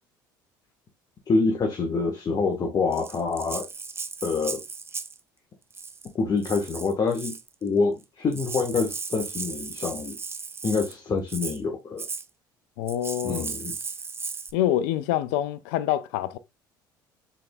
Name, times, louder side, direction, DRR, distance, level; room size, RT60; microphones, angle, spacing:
voice 1, 1.3-3.7 4.2-4.6 6.1-7.3 7.6-10.1 10.6-12.0 13.2-13.7, left 4 dB, 35° left, 1.2 m, -26 dB
Rattle (instrument), 2.9-5.2 5.7-6.1 6.4-7.5 8.0-8.1 8.3-10.9 11.3-11.6 12.0-12.2 12.9-14.5, right 4 dB, 20° right, 0.6 m, -36 dB
voice 2, 12.8-13.4 14.5-16.4, left 12 dB, 70° left, 0.5 m, -26 dB
6.5 x 3.6 x 2.2 m
hypercardioid pair, 60°, 11 cm